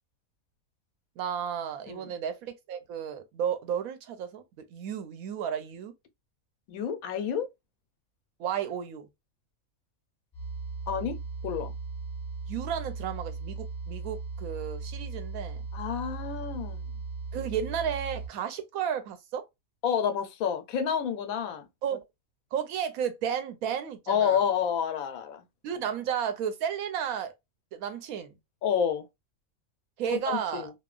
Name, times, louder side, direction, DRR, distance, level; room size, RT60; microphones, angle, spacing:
voice 1, 1.2-4.4 4.7-5.9 8.4-9.1 12.5-15.7 17.3-19.4 21.8-22.0 22.5-24.4 25.6-27.3 27.7-28.3 30.0-30.7, right 8 dB, 85° right, 1.1 m, -33 dB
voice 2, 6.7-7.5 10.9-11.2 11.4-11.7 15.7-16.8 19.8-21.7 24.1-25.4 28.6-29.1 30.1-30.7, left 8 dB, 80° left, 1.0 m, -29 dB
sound 1, 10.3-18.3, right 4 dB, 20° left, 0.9 m, -37 dB
2.9 x 2.1 x 2.3 m
omnidirectional pair, 1.5 m